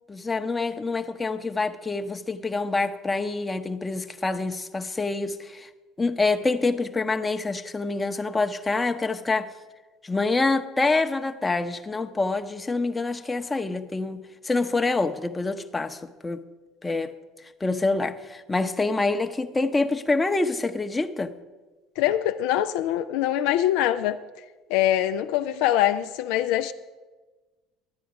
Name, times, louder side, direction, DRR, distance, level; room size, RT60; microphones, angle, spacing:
voice 1, 0.1-5.7 6.0-9.5 10.0-16.4 16.8-17.1 17.6-21.3, left 3 dB, 20° left, 0.7 m, -26 dB
voice 2, 22.0-24.2 24.7-26.7, left 12 dB, 75° left, 0.3 m, -23 dB
11.5 x 9.3 x 5.0 m
hypercardioid pair, 70°, 0 cm